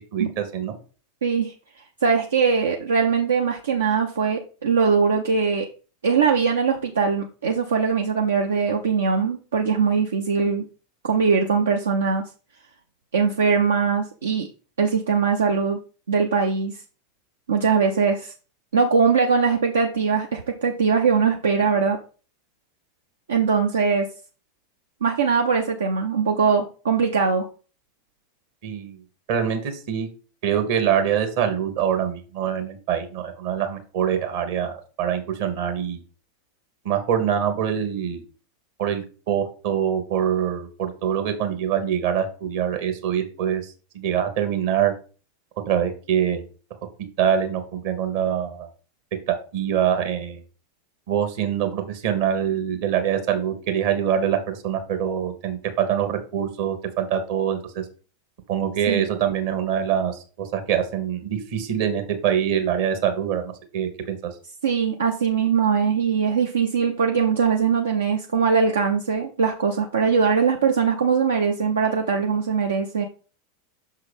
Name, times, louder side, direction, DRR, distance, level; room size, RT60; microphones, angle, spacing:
voice 1, 0.1-0.7 28.6-29.0 29.3-30.1 30.4-36.0 36.8-38.2 38.8-44.9 45.6-46.4 47.2-48.7 49.3-50.4 51.1-57.8 58.5-64.2, right 9 dB, 55° right, 6 dB, 1.3 m, -24 dB
voice 2, 1.2-1.5 2.0-5.7 6.0-10.7 11.0-12.3 13.1-14.5 14.8-15.8 16.1-16.8 17.5-18.3 18.7-22.0 23.3-24.1 25.0-27.5 58.9-59.1 64.6-73.0, right 5 dB, 75° right, 2 dB, 0.6 m, -21 dB
6.3 x 3.7 x 5.1 m, 0.37 s
figure-of-eight pair, 85°, 0 cm